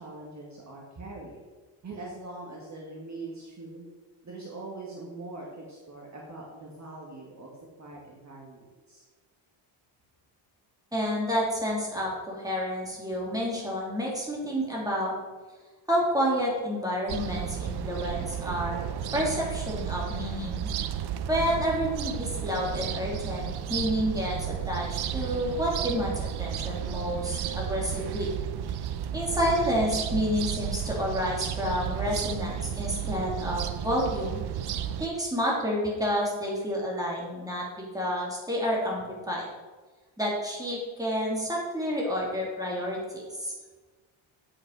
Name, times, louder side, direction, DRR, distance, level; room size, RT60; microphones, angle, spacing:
voice 1, 0.0-1.4 1.8-3.9 4.2-7.5 7.8-9.1, right 2 dB, 35° right, -3 dB, 2.0 m, -42 dB
voice 2, 10.9-15.1 15.9-18.8 19.1-20.7 21.3-28.3 29.1-34.4 35.0-39.5 40.2-43.5, equal, 5° right, -4 dB, 3.2 m, -29 dB
sound 1, 17.1-35.1, right 9 dB, 50° right, 0.7 m, -33 dB
8.8 x 8.7 x 4.9 m, 1.3 s
cardioid pair, 120°, 49 cm